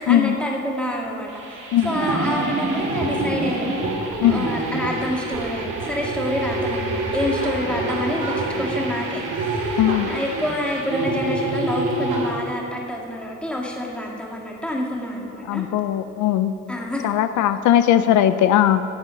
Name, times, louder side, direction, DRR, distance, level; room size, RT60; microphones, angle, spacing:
voice 1, 0.0-3.7 4.3-15.6 16.7-17.0, left 1 dB, 5° left, -2 dB, 1.9 m, -28 dB
sound 1, 1.3-12.3, right 2 dB, 90° right, 1.9 m, -26 dB
voice 2, 9.8-10.1 15.5-16.5 17.0-18.8, left 11 dB, 75° left, 11 dB, 0.4 m, -18 dB
11.0 x 7.3 x 5.0 m, 2.9 s
cardioid pair, 90°, 30 cm